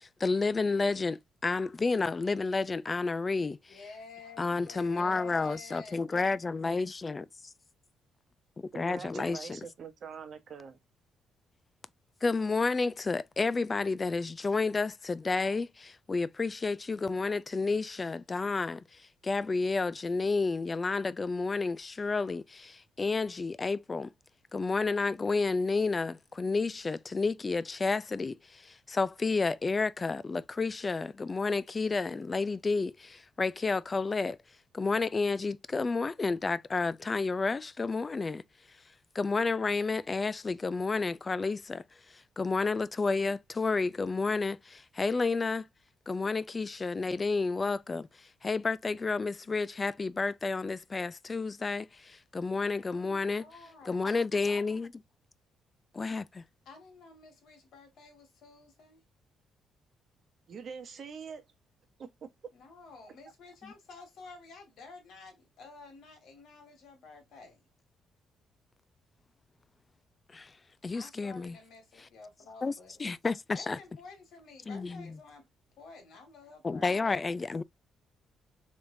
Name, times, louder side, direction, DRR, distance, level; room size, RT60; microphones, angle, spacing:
voice 1, 0.0-3.8 4.4-7.2 8.7-9.6 12.2-18.8 19.2-24.1 24.5-34.4 34.7-38.4 39.1-41.8 42.1-45.7 46.1-53.5 53.9-54.9 55.9-56.4 63.6-63.7 70.3-70.5 70.8-71.6 72.0-72.1 72.6-72.7 73.0-73.8 74.7-75.2 76.6-77.6, left 4 dB, 30° left, 0.3 m, -31 dB
voice 2, 3.7-6.3 52.9-54.0 56.7-59.0 62.5-67.6 70.9-73.0 73.5-75.5 75.8-77.3, left 4 dB, 75° left, 1.8 m, -51 dB
voice 3, 8.7-10.8 60.5-61.4 62.0-62.1, right 6 dB, 55° right, 0.9 m, -43 dB
3.3 x 3.2 x 2.6 m
cardioid pair, 90°, 0 cm